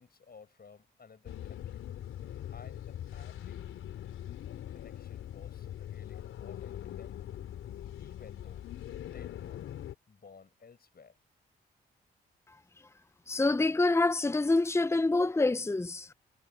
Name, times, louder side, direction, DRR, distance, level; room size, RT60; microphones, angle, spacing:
voice 1, 0.0-1.8 2.5-4.1 4.7-7.2 8.0-8.6 9.0-9.7 10.1-11.2, left 5 dB, 50° left, 7.4 m, -56 dB
sound 1, 1.2-9.9, left 11 dB, 80° left, 3.8 m, -42 dB
voice 2, 13.3-16.1, left 2 dB, 15° left, 0.7 m, -26 dB
supercardioid pair, 45°, 21 cm